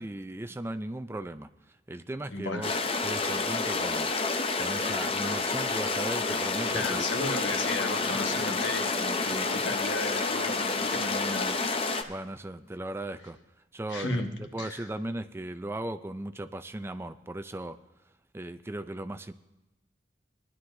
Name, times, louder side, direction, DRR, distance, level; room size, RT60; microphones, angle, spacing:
voice 1, 0.0-1.5 1.9-2.8 3.0-4.1 4.6-7.1 12.1-13.4 13.7-17.8 18.3-19.3, right 1 dB, 15° right, 10 dB, 0.4 m, -37 dB
voice 2, 2.3-2.6 6.7-12.1 13.9-14.3 14.6-14.9, left 2 dB, 90° left, 4 dB, 1.4 m, -34 dB
sound 1, 2.6-12.0, left 3 dB, 30° left, 0.7 m, -29 dB
20.0 x 11.5 x 2.6 m, 1.0 s
head